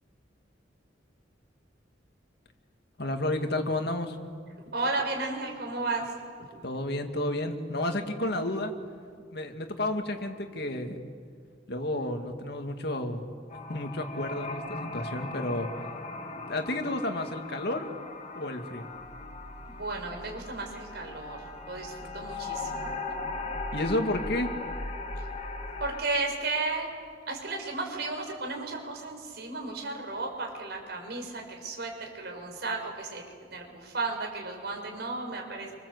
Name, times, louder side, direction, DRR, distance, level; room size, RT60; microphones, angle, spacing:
voice 1, 3.0-4.2 6.6-8.7 9.3-11.0 11.7-13.2 13.7-15.7 16.5-17.9 18.3-18.9 23.7-24.5, left 1 dB, 60° left, 5 dB, 2.3 m, -31 dB
voice 2, 4.7-6.1 6.4-6.6 19.7-22.9 25.8-26.9 27.3-33.2 33.5-35.8, right 3 dB, 60° right, 2 dB, 5.7 m, -34 dB
sound 1, 13.5-26.0, left 2 dB, 35° left, 2.1 m, -38 dB
27.5 x 25.5 x 8.2 m, 2.1 s
head